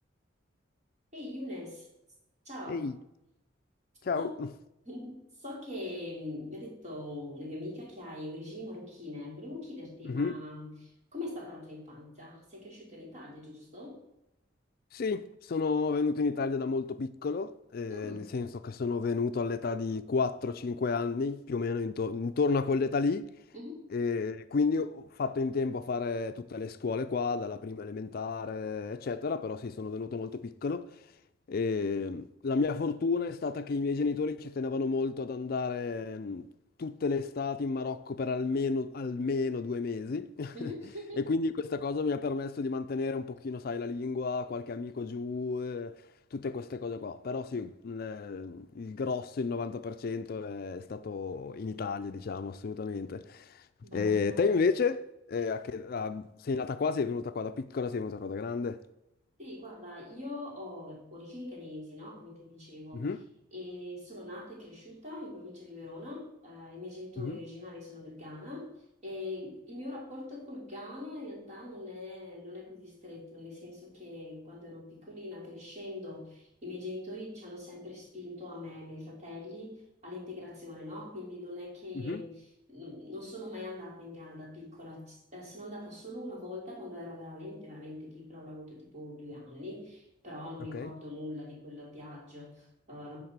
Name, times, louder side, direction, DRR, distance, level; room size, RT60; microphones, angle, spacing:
voice 1, 1.1-1.9 2.4-2.9 4.2-4.4 4.8-14.0 17.9-18.3 23.5-23.9 40.5-41.3 53.8-54.4 59.4-63.1 63.5-68.7 69.0-82.3 82.7-93.2, left 1 dB, 35° right, 2.9 m, -43 dB
voice 2, 4.0-4.5 10.0-10.3 14.9-23.2 23.9-30.9 31.5-36.5 36.8-40.7 41.2-46.0 46.3-53.6 53.9-58.8 62.9-63.2 67.2-67.4 81.9-82.2 90.7-90.9, left 4 dB, 50° left, 0.4 m, -32 dB
10.5 x 3.6 x 6.6 m
head